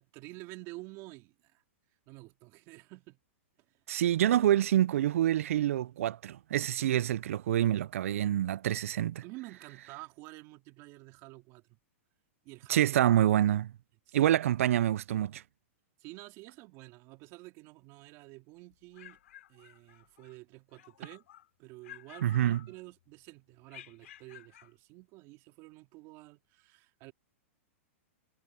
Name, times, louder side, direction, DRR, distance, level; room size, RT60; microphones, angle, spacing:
voice 1, 0.0-1.6 2.1-3.2 3.7-3.8 9.2-11.8 12.4-12.9 14.1-14.4 16.0-19.2 19.5-21.2 21.6-27.1, right 21 dB, 40° right, 3.4 m, -50 dB
voice 2, 3.9-9.2 12.7-13.7 14.1-15.4 22.2-22.6, right 12 dB, 75° right, 0.4 m, -27 dB
sound 1, 18.7-20.4 20.7-21.5 21.8-23.1 23.7-24.8, left 13 dB, 70° left, 7.0 m, -54 dB
hypercardioid pair, 145°, 7 cm